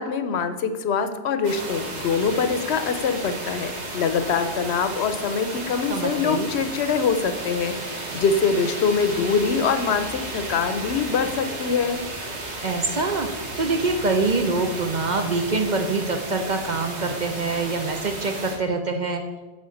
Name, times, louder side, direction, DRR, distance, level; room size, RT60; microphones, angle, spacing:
voice 1, 0.0-12.0, left 5 dB, 70° left, 10 dB, 0.9 m, -24 dB
sound 1, 1.4-18.6, right 2 dB, 70° right, 1.7 m, -33 dB
voice 2, 5.9-6.5 12.6-13.3 13.6-19.2, right 3 dB, 50° right, 5 dB, 0.7 m, -25 dB
9.5 x 3.9 x 6.4 m, 1.2 s
omnidirectional pair, 1.2 m